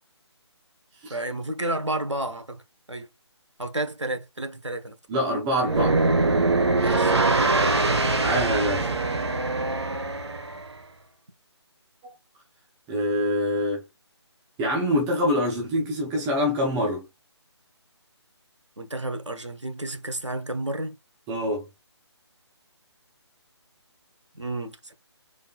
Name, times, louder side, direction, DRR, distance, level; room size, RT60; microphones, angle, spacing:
voice 1, 1.1-2.6 2.9-3.1 3.6-5.0 6.8-8.0 18.8-20.9 24.3-24.9, right 2 dB, 80° right, 1.4 m, -31 dB
voice 2, 5.1-6.0 8.2-8.9 12.0-12.1 12.9-13.8 14.6-17.0 21.3-21.7, equal, 10° right, 0.8 m, -25 dB
sound 1, 5.6-10.7, right 3 dB, 65° right, 1.3 m, -23 dB
5.2 x 4.1 x 2.5 m
figure-of-eight pair, 150°, 15 cm